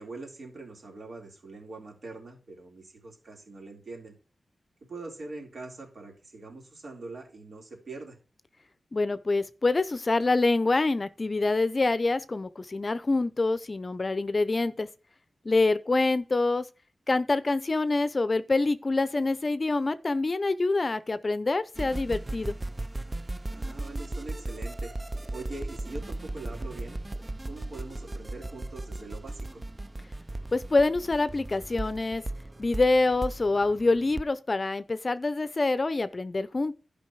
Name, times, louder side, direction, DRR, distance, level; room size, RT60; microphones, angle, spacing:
voice 1, 0.0-4.1 4.9-8.2 23.5-24.9 25.3-27.0 27.5-29.6, right 3 dB, 65° right, 3.7 m, -43 dB
voice 2, 8.9-14.9 15.4-16.7 17.1-22.6 30.5-32.2 32.6-36.7, left 3 dB, 40° left, 0.6 m, -26 dB
sound 1, 21.8-34.2, right 2 dB, 25° right, 0.5 m, -37 dB
11.5 x 5.3 x 4.7 m
wide cardioid pair, 90°, 0 cm